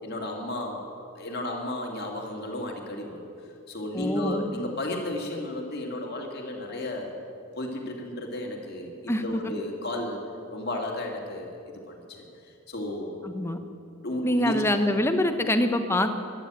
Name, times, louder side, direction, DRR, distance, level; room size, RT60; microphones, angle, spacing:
voice 1, 0.0-0.9 1.1-3.2 3.7-7.1 7.6-10.2 10.5-12.3 12.7-13.2 14.0-14.7, left 1 dB, 45° left, 0 dB, 2.3 m, -33 dB
voice 2, 3.9-4.4 9.1-9.2 13.2-13.6 14.2-16.1, left 1 dB, 10° left, 7 dB, 0.8 m, -25 dB
13.0 x 11.5 x 9.0 m, 2.6 s
head